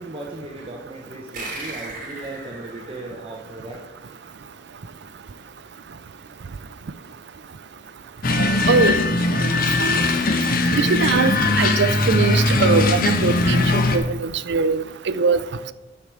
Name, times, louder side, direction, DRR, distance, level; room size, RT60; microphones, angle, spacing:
voice 1, 0.0-3.8, right 2 dB, 30° right, -1 dB, 1.0 m, -36 dB
sound 1, 1.3-4.3, right 2 dB, 50° right, 3.0 m, -37 dB
sound 2, 8.2-14.0, left 2 dB, 50° left, 1.1 m, -20 dB
voice 2, 8.4-9.0 10.8-14.8 15.2-15.4, right 4 dB, 65° right, 15 dB, 0.5 m, -21 dB
9.6 x 4.8 x 7.2 m, 1.1 s
head